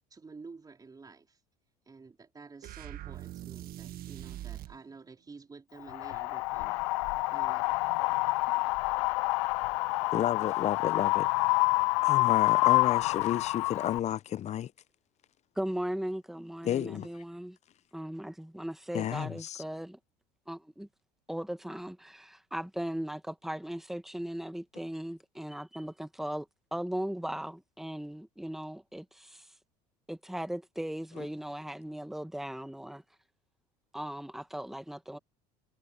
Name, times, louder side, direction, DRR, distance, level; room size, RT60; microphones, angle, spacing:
voice 1, 0.1-1.4 1.9-6.8 7.3-7.8, right 4 dB, 20° right, 4.0 m, -50 dB
sound 1, 2.6-4.8, right 13 dB, 55° right, 1.6 m, -42 dB
Wind, 5.9-14.0, left 25 dB, 85° left, 0.4 m, -27 dB
voice 2, 10.1-11.3 12.0-14.7 16.6-17.1 18.9-19.6 31.2-31.3, left 11 dB, 35° left, 0.6 m, -31 dB
voice 3, 15.6-17.6 17.9-20.0 20.5-20.9 21.3-29.5 30.1-33.0 33.9-35.2, right 1 dB, ahead, 1.8 m, -38 dB
supercardioid pair, 105°, 19 cm